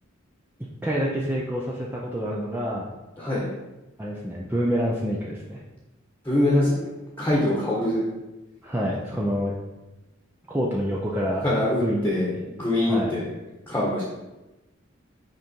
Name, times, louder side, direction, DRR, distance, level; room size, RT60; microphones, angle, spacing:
voice 1, 0.8-2.9 4.0-5.6 8.6-9.5 10.5-11.4 11.8-12.4 12.8-13.1, equal, 10° right, -4 dB, 0.7 m, -27 dB
voice 2, 3.2-3.5 6.2-6.7 7.2-8.0 11.4-13.2 13.7-14.0, left 1 dB, 10° left, -5 dB, 1.3 m, -23 dB
6.6 x 5.1 x 4.5 m, 1.0 s
head